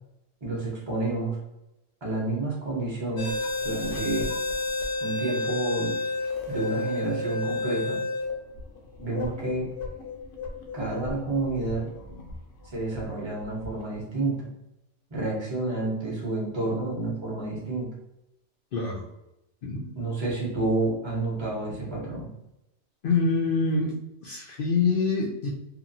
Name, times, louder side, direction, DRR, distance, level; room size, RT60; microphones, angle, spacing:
voice 1, 0.4-1.4 2.0-3.4 3.6-4.3 5.0-5.9 6.5-8.0 9.0-9.7 10.7-11.9 12.6-14.5 15.1-17.9 20.0-22.3, right 2 dB, 25° right, -3 dB, 0.8 m, -29 dB
sound 1, 3.2-12.4 12.9-13.0 13.6-13.8, left 2 dB, 75° left, 1.0 m, -31 dB
voice 2, 18.7-19.0 19.6-19.9 23.0-24.0 24.2-25.5, left 4 dB, 60° left, -3 dB, 0.6 m, -25 dB
2.9 x 2.4 x 2.6 m, 0.88 s
omnidirectional pair, 1.3 m